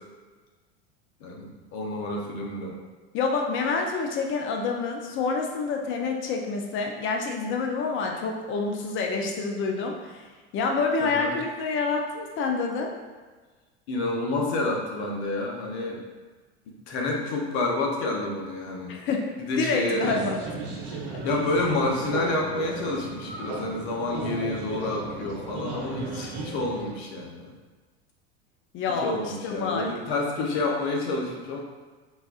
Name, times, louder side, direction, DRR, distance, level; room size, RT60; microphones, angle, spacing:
voice 1, 1.2-2.8 11.0-11.3 13.9-16.0 16.7-19.0 19.4-20.3 20.8-27.5 29.0-31.6, left 2 dB, 70° left, -1 dB, 0.8 m, -29 dB
voice 2, 3.1-12.9 18.9-20.4 21.1-21.2 28.7-29.9, left 4 dB, 35° left, 2 dB, 0.5 m, -28 dB
sound 1, 20.0-26.9, right 3 dB, 65° right, 0.9 m, -35 dB
4.0 x 2.3 x 2.4 m, 1.3 s
hypercardioid pair, 90°, 33 cm